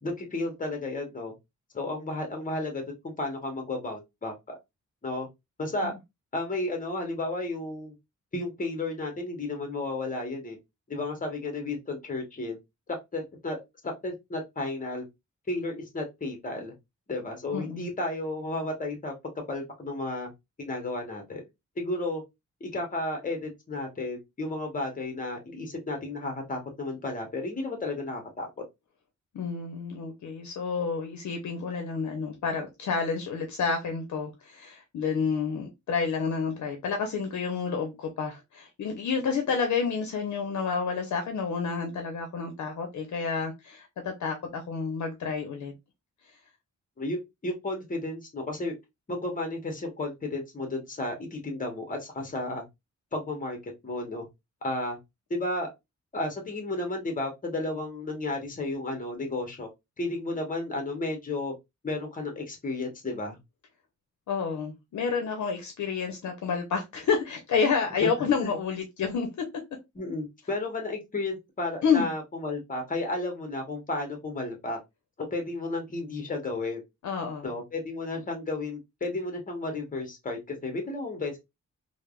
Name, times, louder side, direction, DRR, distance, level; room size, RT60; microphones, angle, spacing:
voice 1, 0.0-1.3 1.7-4.6 5.0-5.3 5.6-5.9 6.3-7.9 8.3-10.6 10.9-12.6 13.1-15.0 15.5-16.7 17.1-19.1 19.5-20.3 20.6-21.4 21.8-22.2 22.6-28.6 47.0-48.7 49.1-52.6 53.1-54.3 54.6-55.0 55.3-55.7 56.1-59.7 60.0-61.5 61.8-63.4 68.0-68.1 68.4-68.5 69.9-74.8 75.2-76.8 77.4-81.4, left 2 dB, 25° left, 0.8 m, -33 dB
voice 2, 17.5-17.9 29.3-45.7 64.3-69.5 71.8-72.1 77.0-77.5, left 5 dB, 70° left, 0.6 m, -29 dB
3.2 x 2.0 x 2.3 m
wide cardioid pair, 160°, 30 cm